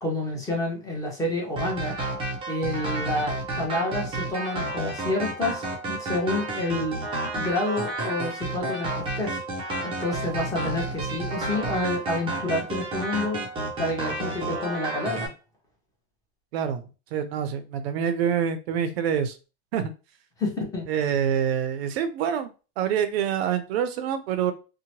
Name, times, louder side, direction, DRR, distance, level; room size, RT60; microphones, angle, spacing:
voice 1, 0.0-2.1 2.5-7.0 7.2-9.4 9.8-13.4 13.8-15.3 20.4-20.9, left 2 dB, 10° left, -2 dB, 0.8 m, -29 dB
sound 1, 1.6-15.3, right 2 dB, 15° right, 0.5 m, -31 dB
voice 2, 16.5-16.8 17.1-19.4 19.7-19.9 20.9-22.5 22.8-24.5, right 8 dB, 70° right, 10 dB, 0.6 m, -26 dB
2.8 x 2.2 x 2.9 m, 0.32 s
supercardioid pair, 155°, 32 cm